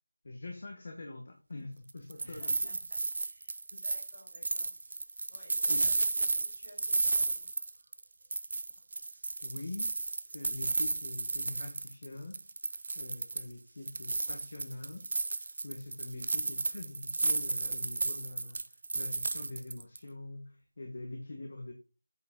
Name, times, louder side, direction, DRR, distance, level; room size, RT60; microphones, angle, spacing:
voice 1, 0.2-2.8 3.7-3.8 5.7-5.8 9.4-9.9 10.2-12.4 12.9-15.1 15.4-18.6 18.9-21.7, left 2 dB, 35° left, 3 dB, 1.1 m, -44 dB
sound 1, 1.9-8.0 8.3-12.1 12.3-13.5 13.9-20.0, right 3 dB, 35° right, 0.4 m, -33 dB
voice 2, 2.2-4.7 5.3-7.9, left 1 dB, 20° left, -5 dB, 3.5 m, -56 dB
8.2 x 4.8 x 3.7 m, 0.33 s
figure-of-eight pair, 175°, 0 cm